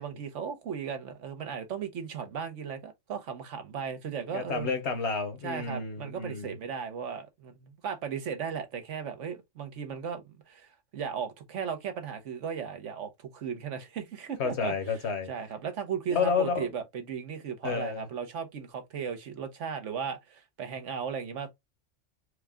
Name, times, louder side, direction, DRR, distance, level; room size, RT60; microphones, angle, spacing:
voice 1, 0.0-4.7 5.4-14.7 15.3-21.5, right 7 dB, 80° right, 1.3 m, -36 dB
voice 2, 4.3-6.5 14.4-15.3 16.1-16.7 17.6-18.0, left 5 dB, 65° left, 1.3 m, -30 dB
4.6 x 2.3 x 3.5 m
omnidirectional pair, 1.2 m